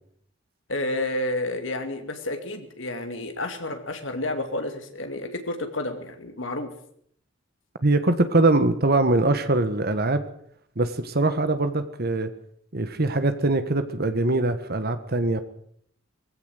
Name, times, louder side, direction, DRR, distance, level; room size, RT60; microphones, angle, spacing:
voice 1, 0.7-6.7, left 2 dB, 80° left, 5 dB, 2.7 m, -30 dB
voice 2, 7.8-10.2 10.8-12.3 12.7-15.4, right 2 dB, 55° right, 10 dB, 1.6 m, -22 dB
21.0 x 16.0 x 8.0 m, 0.66 s
head